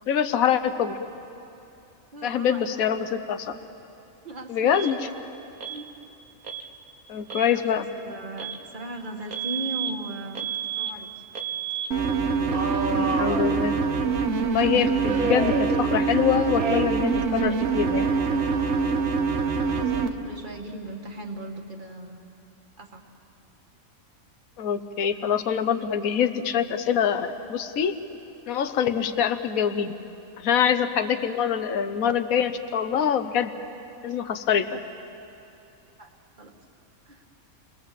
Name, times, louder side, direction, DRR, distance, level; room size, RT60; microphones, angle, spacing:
voice 1, 0.1-1.0 2.2-3.6 4.5-4.9 7.1-7.9 12.8-13.8 14.5-18.1 24.6-27.9 28.5-29.9 30.4-33.5 34.0-34.7, left 8 dB, 75° left, 9 dB, 1.4 m, -24 dB
voice 2, 2.1-2.7 4.2-5.0 5.7-5.9 7.5-10.5 10.8-11.2 12.9-13.1 19.7-22.2 22.8-23.0 36.0-36.1 36.4-36.5 37.1-37.2, right 1 dB, 35° right, 3 dB, 2.0 m, -38 dB
Alarm, 4.7-4.9 5.6-5.8 6.4-6.7 7.2-7.5 8.4-8.6 9.3-9.9 10.4-10.9 11.4-11.9 12.5-14.0 15.0-16.2 16.6-17.1 17.4-19.1, right 6 dB, 85° right, 1.8 m, -32 dB
sound 1, 11.9-20.1, right 4 dB, 55° right, 1.4 m, -24 dB
30.0 x 22.0 x 7.6 m, 2.8 s
omnidirectional pair, 1.5 m